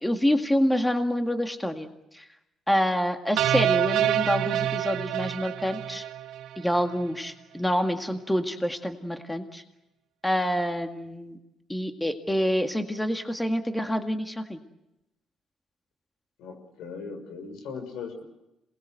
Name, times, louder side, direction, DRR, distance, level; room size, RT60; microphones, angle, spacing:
voice 1, 0.0-1.9 2.1-2.2 2.7-6.0 6.6-9.6 10.2-11.4 11.7-14.6, equal, 5° left, 5 dB, 1.9 m, -27 dB
sound 1, 3.4-6.7, right 11 dB, 80° right, 0.9 m, -26 dB
voice 2, 16.4-18.2, left 5 dB, 85° left, 6 dB, 6.2 m, -38 dB
27.0 x 20.0 x 8.0 m, 0.91 s
cardioid pair, 95°, 0 cm